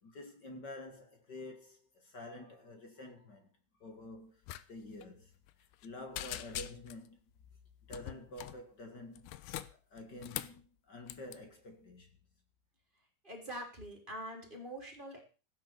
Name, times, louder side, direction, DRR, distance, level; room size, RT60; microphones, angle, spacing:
voice 1, 0.0-3.5 3.8-5.3 5.8-7.2 7.9-9.3 9.7-12.1, left 2 dB, 40° left, 1.7 m, -49 dB
sound 1, 4.5-4.6 4.9-5.1 5.5-5.9 6.2-7.1 7.9-8.6 9.2-10.6 11.1-11.4, left 14 dB, 80° left, 2.7 m, -43 dB
voice 2, 13.2-15.2, right 1 dB, 15° right, 3.1 m, -44 dB
15.5 x 8.7 x 6.9 m
omnidirectional pair, 4.6 m